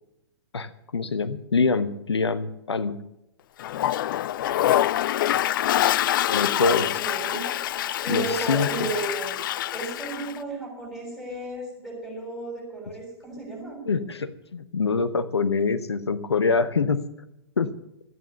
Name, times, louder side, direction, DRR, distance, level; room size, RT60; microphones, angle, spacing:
voice 1, 0.5-3.0 6.3-6.9 8.1-8.7 13.8-17.0 17.6-17.7, left 4 dB, 80° left, 10 dB, 0.9 m, -25 dB
Toilet flush, 3.6-10.4, left 12 dB, 50° left, 0.4 m, -25 dB
voice 2, 6.6-7.4 8.0-9.3 9.7-13.8, right 2 dB, ahead, 0 dB, 6.9 m, -33 dB
14.0 x 9.5 x 6.9 m, 0.86 s
figure-of-eight pair, 115°, 14 cm